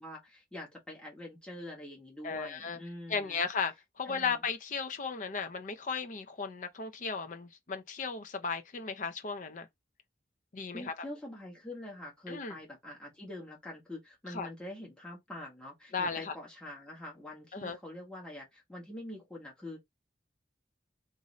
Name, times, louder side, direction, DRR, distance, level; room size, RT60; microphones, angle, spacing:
voice 1, 0.0-3.4 4.1-4.4 10.7-19.8, left 1 dB, 5° left, 1.1 m, -45 dB
voice 2, 2.2-2.8 3.1-9.7 10.5-10.9 12.3-12.6 14.3-14.5 15.9-16.3 17.5-17.8, left 5 dB, 45° left, 0.5 m, -35 dB
2.6 x 2.5 x 3.1 m
head